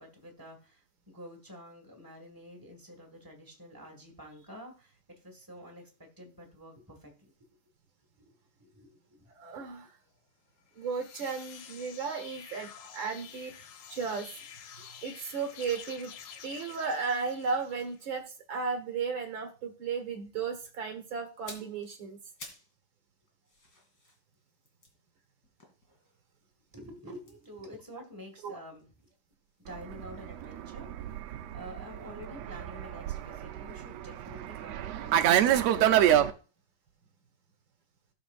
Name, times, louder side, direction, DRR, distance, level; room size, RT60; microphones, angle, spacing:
voice 1, 0.0-7.1 8.2-9.3 26.7-28.9 29.7-35.6, equal, 10° right, 1 dB, 1.2 m, -49 dB
voice 2, 9.3-9.9 10.7-14.3 14.8-16.1 16.4-22.2 28.4-28.6, right 5 dB, 50° right, 5 dB, 1.6 m, -35 dB
sound 1, 10.7-18.1, left 8 dB, 65° left, 1.9 m, -49 dB
sound 2, 21.3-22.8 23.1-26.3 27.2-29.2 29.5-29.7, left 2 dB, 35° left, 2.6 m, -53 dB
Fixed-wing aircraft airplane, 29.8-36.3, right 11 dB, 75° right, 1.5 m, -27 dB
16.5 x 6.9 x 2.5 m, 0.36 s
omnidirectional pair, 3.7 m